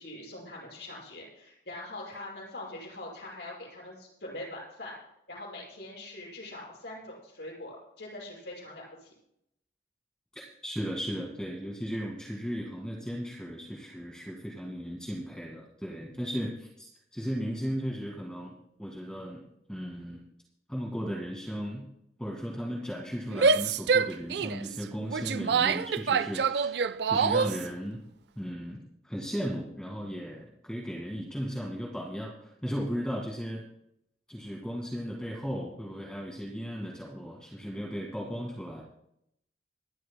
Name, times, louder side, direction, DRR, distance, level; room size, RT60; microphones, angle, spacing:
voice 1, 0.0-5.0 5.3-9.1, left 1 dB, 75° left, -4 dB, 6.4 m, -43 dB
voice 2, 10.3-19.4 19.7-20.2 20.7-21.9 22.2-28.0 28.4-33.6 34.3-38.8, equal, 5° left, -3 dB, 1.9 m, -36 dB
Female speech woman speaking / Yell, 23.3-27.6, right 5 dB, 70° right, 0.4 m, -26 dB
26.0 x 12.0 x 2.2 m, 0.76 s
head